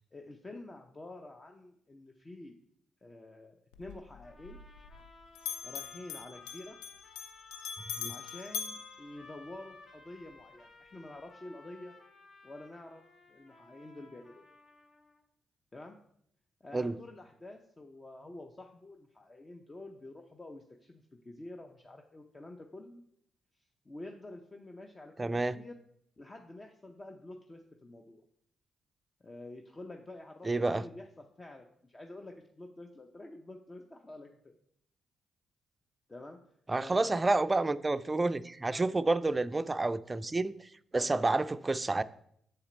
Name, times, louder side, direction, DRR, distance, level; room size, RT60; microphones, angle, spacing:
voice 1, 0.1-2.5 3.0-4.6 5.6-6.8 8.1-12.0 12.4-14.5 15.7-16.0 16.6-23.0 23.8-25.7 26.2-28.2 29.2-34.5 36.1-36.4 36.7-37.2 38.7-38.9 41.0-41.1, left 2 dB, 30° left, 3 dB, 0.6 m, -48 dB
Bell, 3.7-5.1 5.4-9.8, left 8 dB, 90° left, 0.3 m, -42 dB
sound 1, 4.2-15.2, left 2 dB, 50° left, 1.0 m, -57 dB
voice 2, 25.2-25.6 30.4-30.8 36.7-42.0, right 2 dB, 25° right, 14 dB, 0.3 m, -29 dB
6.6 x 4.2 x 3.9 m, 0.69 s
hypercardioid pair, 45°, 0 cm